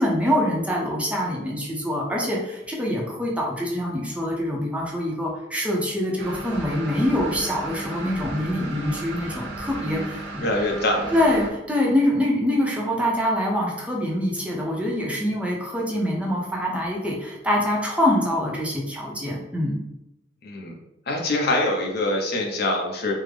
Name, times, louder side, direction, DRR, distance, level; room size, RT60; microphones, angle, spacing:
voice 1, 0.0-10.4 11.1-19.8, left 1 dB, 5° right, -2 dB, 0.6 m, -25 dB
sound 1, 6.2-11.5, right 2 dB, 65° right, 0.7 m, -35 dB
voice 2, 10.4-11.1 20.4-20.8 21.1-23.1, left 1 dB, 60° left, 0 dB, 0.7 m, -24 dB
3.5 x 2.0 x 3.3 m, 0.90 s
head